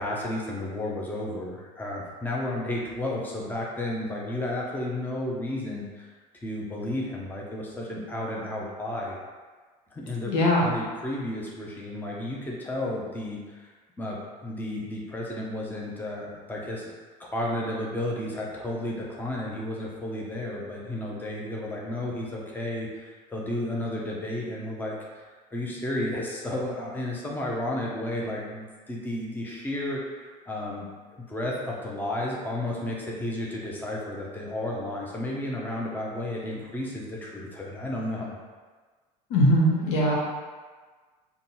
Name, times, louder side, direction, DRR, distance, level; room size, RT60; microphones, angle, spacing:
voice 1, 0.0-6.1 6.4-9.2 9.9-10.3 10.6-13.7 14.0-16.9 17.2-25.2 25.5-30.9 31.3-38.4, left 1 dB, 10° left, -3 dB, 0.6 m, -32 dB
voice 2, 10.3-10.7 39.3-40.2, equal, 65° left, -4 dB, 0.9 m, -21 dB
3.7 x 2.2 x 2.7 m, 1.4 s
hypercardioid pair, 75°, 21 cm